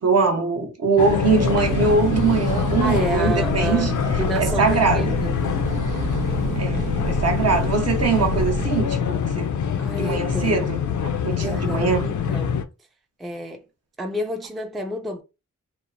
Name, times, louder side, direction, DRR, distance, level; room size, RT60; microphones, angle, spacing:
voice 1, 0.0-3.9 4.4-5.1 6.6-9.5 9.9-10.8 11.0-12.1, right 4 dB, 55° right, 0.8 m, -22 dB
sound 1, 1.0-12.6, left 7 dB, 70° left, 0.5 m, -25 dB
sound 2, 1.2-8.7, right 3 dB, 85° right, 0.5 m, -29 dB
voice 2, 2.8-5.4 9.8-10.7 11.4-12.5 13.2-13.6 14.0-15.2, equal, ahead, 0.4 m, -30 dB
2.9 x 2.0 x 2.4 m
wide cardioid pair, 100°, 31 cm